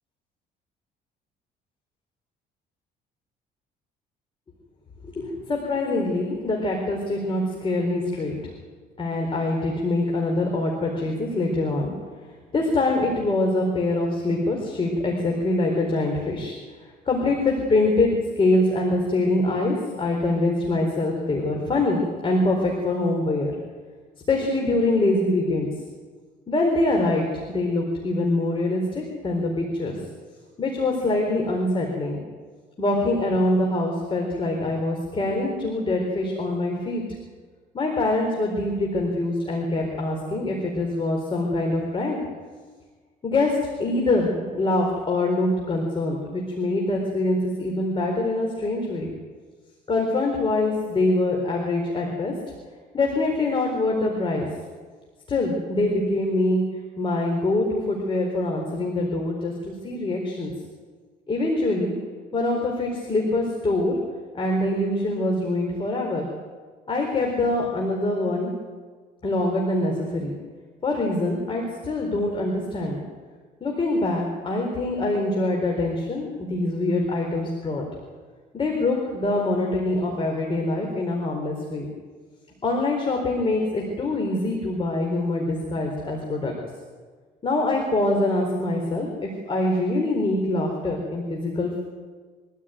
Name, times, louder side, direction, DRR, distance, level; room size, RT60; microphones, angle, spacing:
voice 1, 5.0-8.5 9.0-11.9 12.5-16.6 17.1-23.6 24.3-25.7 26.5-30.0 30.6-32.2 32.8-37.0 37.7-42.2 43.2-49.1 49.9-52.4 52.9-54.5 55.3-56.6 57.0-60.5 61.3-61.9 62.3-64.0 64.3-66.3 66.9-68.5 69.2-70.3 70.8-73.0 73.6-77.8 78.5-81.9 82.6-86.5 87.4-91.8, left 2 dB, 30° left, 1 dB, 4.2 m, -24 dB
24.0 x 14.0 x 9.3 m, 1.5 s
cardioid pair, 110°, 17 cm